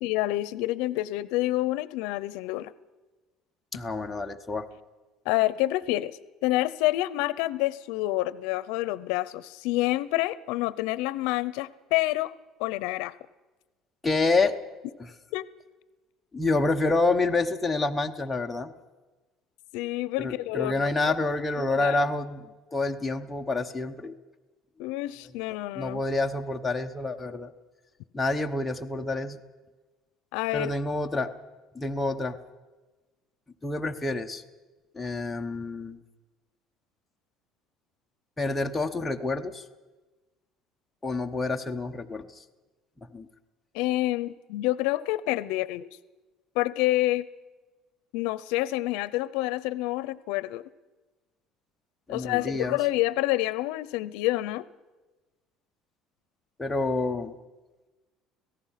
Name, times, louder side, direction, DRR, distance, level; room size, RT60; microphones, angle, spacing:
voice 1, 0.0-2.7 5.3-12.3 12.6-13.1 15.3-15.4 19.7-20.9 21.6-22.0 24.8-26.0 30.3-30.7 43.7-45.9 46.5-47.3 48.1-50.6 52.1-54.6, left 17 dB, 85° left, 18 dB, 0.6 m, -28 dB
voice 2, 3.7-4.7 14.0-14.5 15.0-15.1 16.3-18.7 20.2-24.1 25.7-27.5 28.1-29.4 30.5-31.3 31.7-32.4 33.6-34.4 34.9-36.0 38.4-39.6 41.0-42.3 43.1-43.3 52.1-52.8 56.6-57.3, left 3 dB, 10° left, 3 dB, 1.0 m, -28 dB
26.0 x 17.5 x 5.8 m, 1.2 s
cardioid pair, 155°, 0 cm